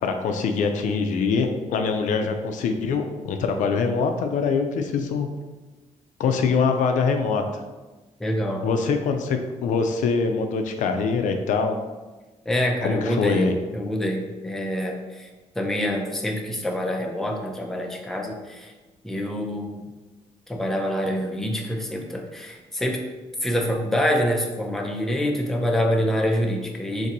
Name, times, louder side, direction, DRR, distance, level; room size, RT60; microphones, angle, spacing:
voice 1, 0.0-5.3 6.2-7.6 8.6-11.8 12.8-13.6, left 5 dB, 75° left, 6 dB, 0.4 m, -23 dB
voice 2, 8.2-8.6 12.5-15.3 15.6-18.7 19.0-19.8 20.5-23.0 23.4-27.1, equal, 5° left, 1 dB, 0.4 m, -26 dB
2.6 x 2.6 x 4.0 m, 1.2 s
cardioid pair, 135°, 13 cm